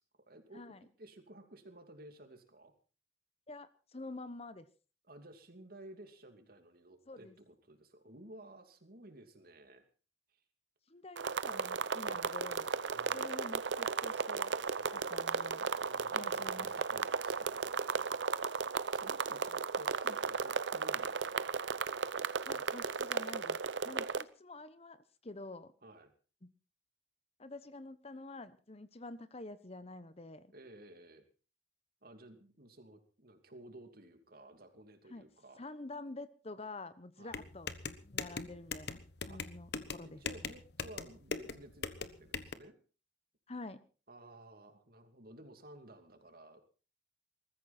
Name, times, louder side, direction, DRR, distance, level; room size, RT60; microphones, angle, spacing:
voice 1, 0.0-2.7 5.1-9.8 10.3-10.4 12.9-13.4 14.7-14.9 15.8-18.1 18.9-21.5 23.8-24.3 25.8-26.1 30.5-31.2 32.0-35.6 37.2-37.4 39.3-39.4 40.0-42.8 44.1-46.6, right 1 dB, 55° right, 7 dB, 2.8 m, -55 dB
voice 2, 3.5-4.6 7.1-7.3 10.9-12.7 13.1-14.5 14.9-15.7 16.1-16.9 22.4-23.6 23.8-25.0 25.2-25.7 26.4-26.5 27.4-30.5 35.1-35.3 35.6-37.7 38.0-39.0 39.3-40.2 43.5-43.8, left 2 dB, 35° left, 14 dB, 1.0 m, -48 dB
sound 1, 11.2-24.2, right 5 dB, 85° right, 0.7 m, -35 dB
sound 2, 37.3-42.5, left 5 dB, 65° left, 1.2 m, -41 dB
21.0 x 14.0 x 4.3 m, 0.37 s
head